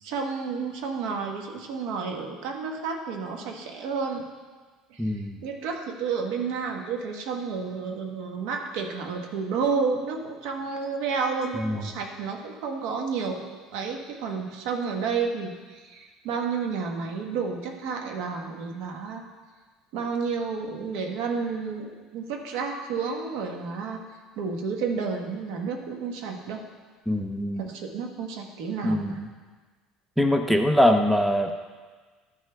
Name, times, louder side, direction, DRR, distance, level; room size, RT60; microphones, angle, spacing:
voice 1, 0.0-4.2 4.9-19.3 19.9-24.0 24.4-26.6 27.6-29.2, right 5 dB, 75° right, 3 dB, 1.1 m, -31 dB
voice 2, 5.0-5.4 11.5-11.8 27.1-27.7 28.8-29.3 30.2-31.6, left 1 dB, ahead, 5 dB, 0.4 m, -23 dB
13.0 x 5.6 x 3.4 m, 1.4 s
cardioid pair, 150°, 0 cm